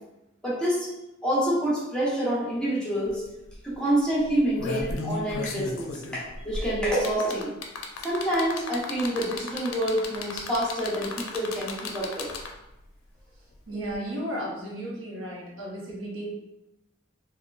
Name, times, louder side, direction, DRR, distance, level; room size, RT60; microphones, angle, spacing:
voice 1, 0.4-0.9 1.2-3.2 3.6-7.5 8.0-12.3, right 1 dB, 5° left, -8 dB, 0.8 m, -27 dB
sound 1, 3.1-3.2 3.5-3.7 4.3-12.7 13.9-14.0, left 3 dB, 80° left, 0.4 m, -35 dB
voice 2, 13.7-16.3, right 1 dB, 75° right, -4 dB, 0.9 m, -34 dB
3.6 x 2.2 x 2.3 m, 0.90 s
head